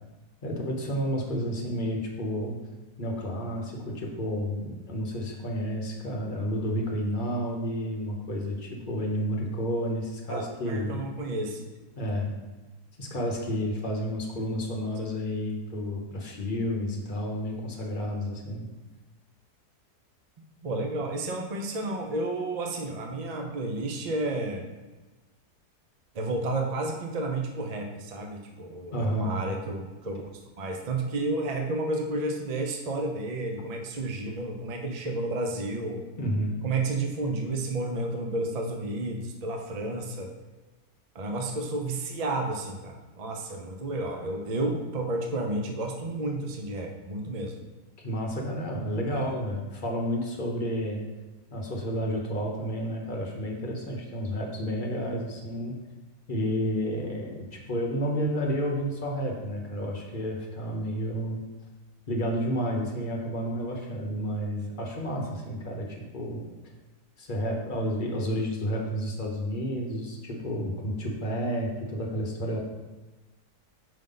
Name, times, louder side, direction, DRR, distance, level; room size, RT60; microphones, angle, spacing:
voice 1, 0.4-2.5 3.0-11.0 12.0-12.3 13.0-18.7 28.9-29.4 36.2-36.6 48.0-51.0 51.5-55.8 56.3-61.4 62.1-66.4 67.2-72.6, equal, 35° left, -1 dB, 1.0 m, -31 dB
voice 2, 10.3-11.7 20.6-24.7 26.1-30.2 30.6-36.0 36.6-40.3 41.1-47.6 49.1-49.3, right 2 dB, 65° right, 3 dB, 0.3 m, -31 dB
5.4 x 5.4 x 3.8 m, 1.2 s
omnidirectional pair, 1.7 m